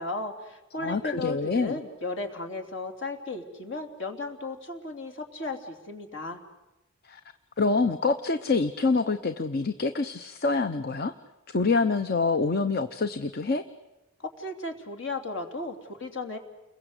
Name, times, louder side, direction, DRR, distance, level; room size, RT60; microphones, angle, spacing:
voice 1, 0.0-6.4 14.2-16.4, left 2 dB, 70° left, 5 dB, 3.2 m, -35 dB
voice 2, 0.7-1.8 7.1-7.2 7.6-11.1 11.5-13.6, left 4 dB, 50° left, 10 dB, 0.8 m, -26 dB
29.5 x 22.0 x 8.1 m, 1.0 s
head